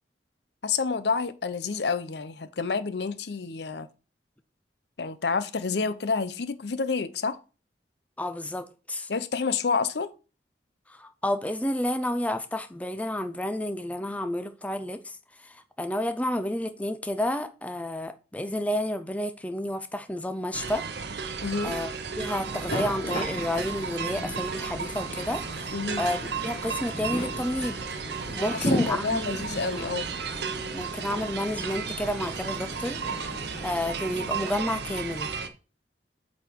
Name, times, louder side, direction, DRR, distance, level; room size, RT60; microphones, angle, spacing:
voice 1, 0.6-3.9 5.0-7.4 9.1-10.1 21.4-21.8 25.7-26.0 28.5-30.1, left 4 dB, 70° left, 0.7 m, -29 dB
voice 2, 8.2-9.1 10.9-15.2 15.4-20.8 21.2-26.2 26.4-27.8 28.4-29.5 29.7-29.9 30.7-33.0 33.6-35.3, left 1 dB, 10° left, 0.5 m, -30 dB
sound 1, 20.5-35.5, right 5 dB, 65° right, 0.8 m, -34 dB
sound 2, 22.4-34.5, left 1 dB, 45° left, 3.3 m, -37 dB
8.5 x 4.1 x 4.5 m
head